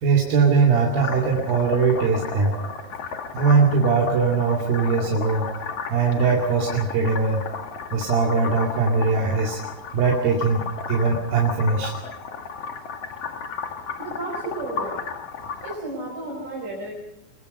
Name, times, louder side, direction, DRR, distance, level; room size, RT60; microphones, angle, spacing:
voice 1, 0.0-2.5 3.3-5.5 5.9-7.4 7.9-9.6 9.9-10.6 10.9-11.9, right 4 dB, 70° right, -2 dB, 4.1 m, -20 dB
sound 1, 1.0-15.8, left 5 dB, 45° left, 2.5 m, -34 dB
voice 2, 14.0-15.0 15.6-16.9, right 2 dB, 50° right, -4 dB, 6.5 m, -33 dB
23.5 x 22.0 x 5.5 m, 0.82 s
omnidirectional pair, 4.4 m